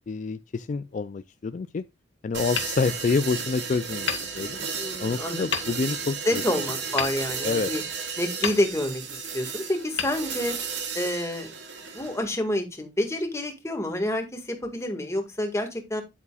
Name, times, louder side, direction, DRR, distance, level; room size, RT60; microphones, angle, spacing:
voice 1, 0.1-1.8 2.2-4.6 5.0-6.4 7.4-7.7, left 4 dB, 40° left, 0.3 m, -28 dB
sound 1, 2.3-12.2, right 6 dB, 75° right, 2.3 m, -34 dB
Hammer, 2.6-3.5 4.0-5.0 5.5-6.1 7.0-7.9 8.4-9.2 9.9-10.9, left 7 dB, 75° left, 1.7 m, -34 dB
voice 2, 4.8-5.4 6.3-7.8 8.2-10.6 10.9-11.5 11.9-16.0, left 1 dB, 15° left, 1.8 m, -28 dB
9.7 x 8.2 x 2.4 m
head